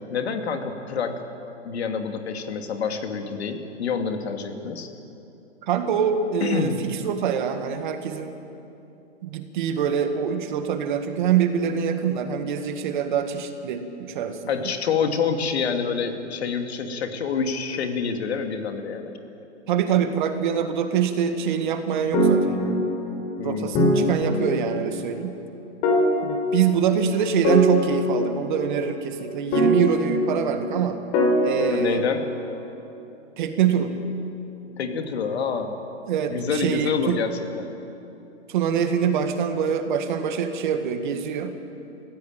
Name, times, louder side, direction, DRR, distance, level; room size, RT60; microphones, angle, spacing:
voice 1, 0.1-1.2 1.6-4.9 6.4-6.8 14.5-19.1 23.4-24.0 31.7-32.2 34.8-35.7 36.3-37.3 37.6-37.7, left 6 dB, 60° left, 5 dB, 2.5 m, -27 dB
voice 2, 5.7-8.3 9.2-14.7 19.7-22.8 23.4-25.4 26.2-31.0 31.4-32.1 33.4-33.9 36.1-37.2 38.5-41.6, right 8 dB, 40° right, 7 dB, 1.8 m, -25 dB
sound 1, 22.1-23.3 23.7-24.9 25.8-27.0 27.4-28.8 29.5-30.7 31.1-32.5, left 1 dB, 25° left, 3.7 m, -22 dB
21.5 x 16.0 x 9.0 m, 2.8 s
hypercardioid pair, 155°, 36 cm